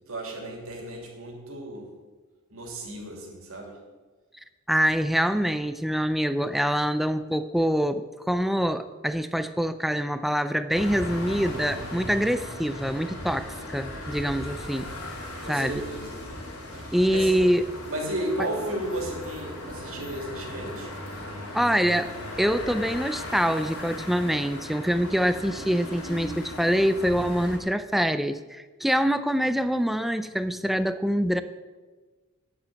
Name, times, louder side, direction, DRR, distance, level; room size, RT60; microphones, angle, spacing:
voice 1, 0.1-1.9 2.5-3.8 15.4-16.2 16.7-17.3 17.9-20.9 21.3-21.4, right 1 dB, 65° right, 1 dB, 2.7 m, -34 dB
voice 2, 4.7-14.9 15.5-15.8 16.9-17.6 21.5-31.4, equal, ahead, 11 dB, 0.4 m, -25 dB
sound 1, 10.7-27.6, left 1 dB, 85° left, 2.8 m, -37 dB
9.5 x 7.3 x 7.6 m, 1.3 s
head